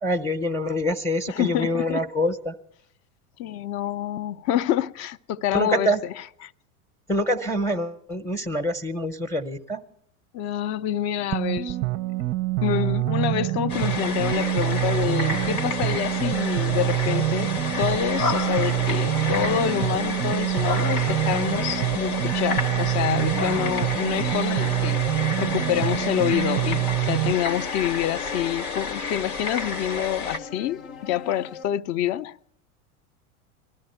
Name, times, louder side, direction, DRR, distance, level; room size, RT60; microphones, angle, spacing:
voice 1, 0.0-2.6 5.5-6.0 7.1-9.8, equal, 5° left, 0.7 m, -25 dB
voice 2, 1.3-2.0 3.4-5.9 6.4-6.5 10.3-11.8 12.6-17.5 17.8-32.3, left 11 dB, 40° left, 0.5 m, -27 dB
sound 1, 11.3-27.3, right 17 dB, 35° right, 0.5 m, -26 dB
sound 2, 13.7-30.4, left 4 dB, 85° left, 1.3 m, -31 dB
sound 3, 14.0-31.6, left 6 dB, 70° left, 0.9 m, -39 dB
20.0 x 13.0 x 4.4 m
hypercardioid pair, 95°, 43 cm